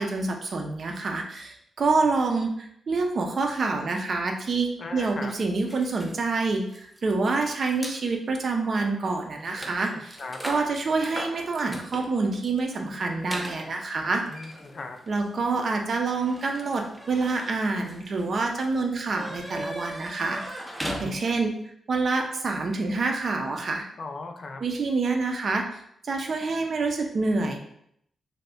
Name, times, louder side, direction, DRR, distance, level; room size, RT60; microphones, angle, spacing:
voice 1, 0.0-10.2 10.4-14.2 15.1-20.4 20.8-21.5 21.9-23.8 24.6-25.6 26.0-27.6, right 3 dB, 50° right, 3 dB, 0.5 m, -27 dB
voice 2, 4.8-5.3 9.9-10.4 14.0-15.0 24.0-24.6, left 3 dB, 45° left, 4 dB, 0.4 m, -38 dB
sound 1, 5.7-8.0 8.7-8.9 9.1-21.6, equal, 5° right, 0.5 m, -40 dB
2.7 x 2.5 x 3.4 m, 0.71 s
cardioid pair, 110°, 0 cm